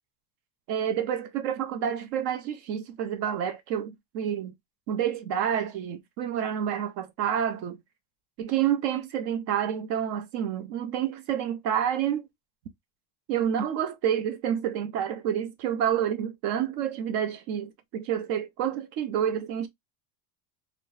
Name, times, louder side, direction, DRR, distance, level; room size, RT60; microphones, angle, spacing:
voice 1, 0.7-4.5 4.9-7.8 8.4-12.3 13.3-19.7, right 9 dB, 60° right, 0.6 m, -28 dB
3.2 x 2.0 x 2.6 m
cardioid pair, 145°, 44 cm